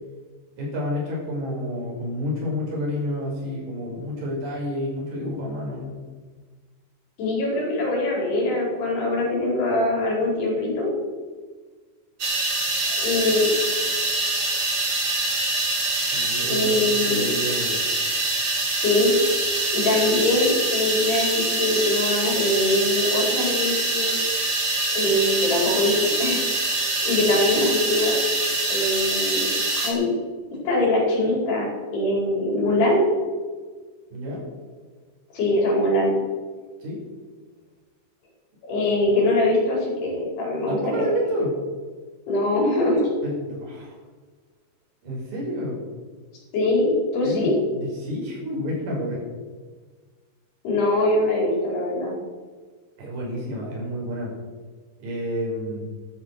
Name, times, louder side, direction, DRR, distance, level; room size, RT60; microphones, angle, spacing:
voice 1, 0.6-5.9 16.0-17.8 34.1-34.4 36.8-37.0 40.7-41.6 43.2-44.0 45.0-45.8 47.2-49.2 53.0-54.3 55.0-55.8, equal, 55° right, -4 dB, 7.3 m, -29 dB
voice 2, 7.2-10.9 12.9-13.5 16.5-17.3 18.7-19.1 19.7-24.2 24.9-26.4 27.0-28.2 28.7-30.1 30.7-33.0 35.3-36.1 38.7-41.1 42.3-43.0 46.5-47.5 50.7-52.1, left 1 dB, 70° left, -3 dB, 6.8 m, -23 dB
sound 1, 12.2-29.9, right 2 dB, 35° right, 2.6 m, -24 dB
13.0 x 12.5 x 6.7 m, 1.5 s
omnidirectional pair, 4.8 m